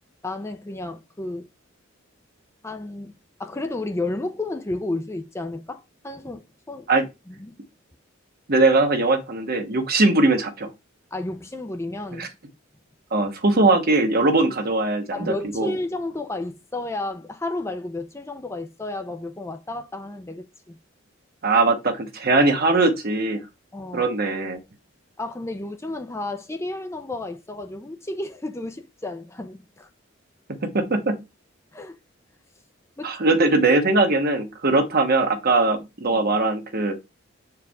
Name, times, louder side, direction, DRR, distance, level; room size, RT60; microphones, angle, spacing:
voice 1, 0.2-1.5 2.6-6.4 6.7-6.9 7.3-7.6 11.1-12.3 15.1-20.8 23.7-24.1 25.2-29.9 31.7-32.0 33.0-33.3 36.1-36.2, left 2 dB, 15° left, 0.6 m, -32 dB
voice 2, 8.5-10.7 12.2-12.3 13.1-15.7 21.4-23.4 23.9-24.6 30.6-31.2 33.0-36.9, right 2 dB, 50° right, 1.2 m, -20 dB
6.6 x 4.6 x 3.6 m
head